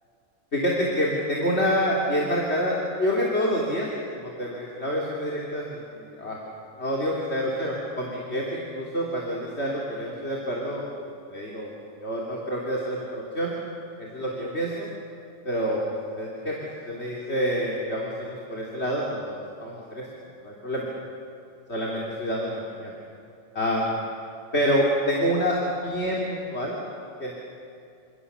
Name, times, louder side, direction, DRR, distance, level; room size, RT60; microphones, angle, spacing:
voice 1, 0.5-3.9 4.1-6.4 6.8-10.8 11.3-11.7 12.0-13.5 14.1-14.9 15.5-15.8 16.2-16.5 16.9-20.0 20.4-20.9 21.7-22.9 23.5-24.0 24.5-26.8 27.2-27.3, equal, 50° left, -4 dB, 3.5 m, -27 dB
29.0 x 27.0 x 7.0 m, 2.6 s
omnidirectional pair, 1.4 m